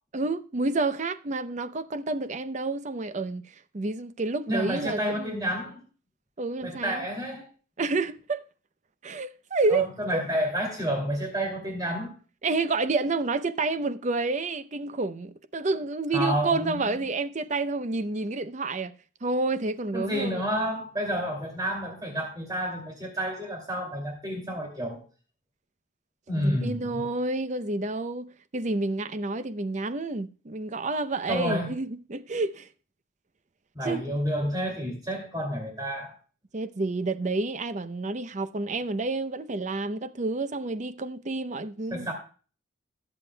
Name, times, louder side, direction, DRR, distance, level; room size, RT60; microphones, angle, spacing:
voice 1, 0.1-3.5 3.7-5.3 6.4-7.0 7.8-8.4 9.0-10.2 12.4-18.9 19.2-20.4 26.3-32.7 33.9-34.0 36.5-42.1, right 3 dB, 35° right, 0.5 m, -29 dB
voice 2, 4.5-5.8 6.6-7.5 9.7-12.1 16.1-17.1 19.9-25.0 26.3-27.0 31.3-31.8 33.7-36.1 41.9-42.1, equal, 20° right, 2.4 m, -30 dB
21.5 x 7.3 x 2.2 m
head